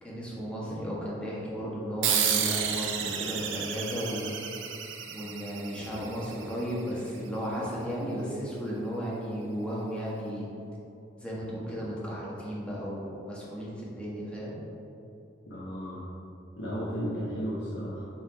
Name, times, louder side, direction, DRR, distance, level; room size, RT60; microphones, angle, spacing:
voice 1, 0.0-4.3 5.1-10.5 11.2-14.6, equal, 5° left, -7 dB, 1.4 m, -34 dB
sound 1, 2.0-7.0, right 8 dB, 80° right, 0.6 m, -31 dB
voice 2, 15.5-16.1 16.6-18.1, equal, 65° left, -6 dB, 0.9 m, -34 dB
7.3 x 3.5 x 4.9 m, 2.8 s
head